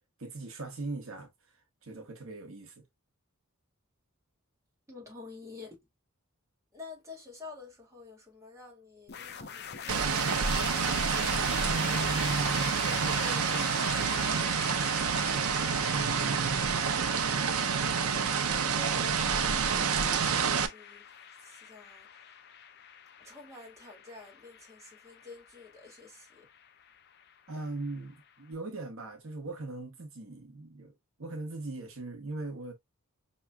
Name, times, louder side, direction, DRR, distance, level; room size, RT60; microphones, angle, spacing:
voice 1, 0.2-1.3 1.8-2.7 11.6-14.1 15.9-16.7 27.5-30.9 31.2-32.7, right 2 dB, 70° right, 1.0 m, -39 dB
voice 2, 4.9-5.7 6.7-10.8 17.2-21.0 21.4-22.1 23.2-26.4, left 3 dB, 15° right, 2.0 m, -49 dB
sound 1, 9.1-28.3, left 8 dB, 50° left, 0.6 m, -43 dB
sound 2, 9.9-20.7, right 6 dB, 90° right, 0.6 m, -28 dB
5.6 x 3.1 x 2.2 m
head